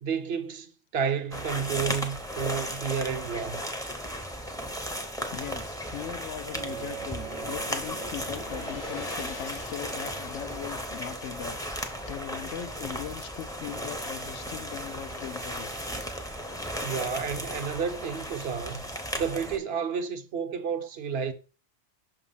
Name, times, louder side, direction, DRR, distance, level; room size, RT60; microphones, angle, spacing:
voice 1, 0.0-3.6 16.8-18.8 19.2-21.3, right 6 dB, 65° right, 0.9 m, -31 dB
sound 1, 1.3-19.6, equal, 5° left, 0.6 m, -35 dB
voice 2, 5.3-11.6 12.1-15.9 16.3-16.9, left 10 dB, 85° left, 0.9 m, -40 dB
Gong, 6.4-14.7, left 6 dB, 55° left, 0.6 m, -48 dB
sound 2, 6.5-12.2, right 8 dB, 85° right, 1.0 m, -45 dB
6.0 x 2.9 x 5.5 m
omnidirectional pair, 1.2 m